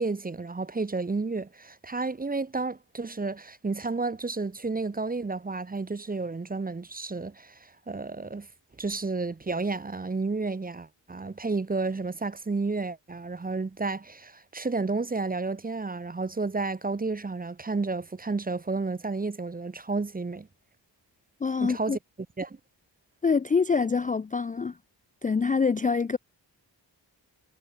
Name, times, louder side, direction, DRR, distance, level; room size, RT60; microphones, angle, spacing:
voice 1, 0.0-8.5 8.8-20.5 21.6-22.0 22.4-22.6, right 3 dB, 20° right, 0.6 m, -31 dB
voice 2, 21.4-22.0 23.2-24.8 25.2-26.2, left 5 dB, 20° left, 0.3 m, -25 dB
cardioid pair, 55°, 45 cm